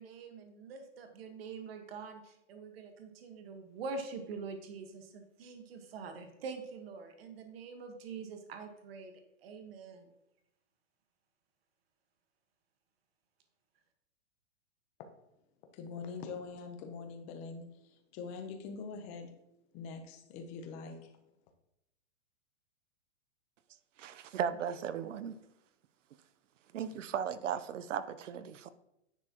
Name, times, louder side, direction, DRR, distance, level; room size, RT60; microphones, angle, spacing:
voice 1, 0.0-9.1 9.4-10.1, right 4 dB, 55° right, 1.3 m, -45 dB
voice 2, 15.7-19.3 19.7-21.1, left 5 dB, 20° left, 0.6 m, -44 dB
voice 3, 24.0-25.4 26.7-28.7, right 8 dB, 90° right, 0.7 m, -36 dB
10.0 x 6.8 x 2.9 m
hypercardioid pair, 160°, 36 cm